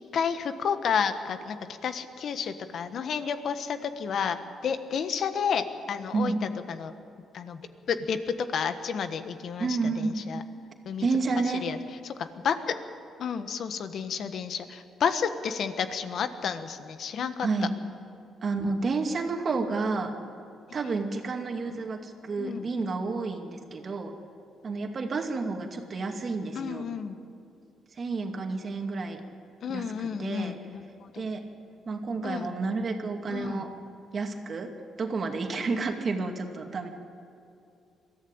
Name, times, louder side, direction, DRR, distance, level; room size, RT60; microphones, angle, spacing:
voice 1, 0.0-1.6 1.8-6.9 7.3-7.6 7.9-8.2 8.5-10.4 10.8-11.1 11.6-11.8 12.0-12.8 13.2-17.5 20.8-20.9 22.4-22.7 26.5-27.2 29.6-31.2 32.2-32.5 33.3-33.6, left 7 dB, 60° left, 10 dB, 1.4 m, -31 dB
voice 2, 9.6-10.1 11.0-11.6 17.4-17.7 18.4-20.1 20.7-24.1 24.6-26.9 28.0-29.2 29.7-30.5 31.2-31.4 31.9-33.7 34.1-34.7 35.0-36.9, right 4 dB, 45° right, 4 dB, 2.4 m, -30 dB
22.5 x 14.0 x 8.9 m, 2.6 s
cardioid pair, 90°, 0 cm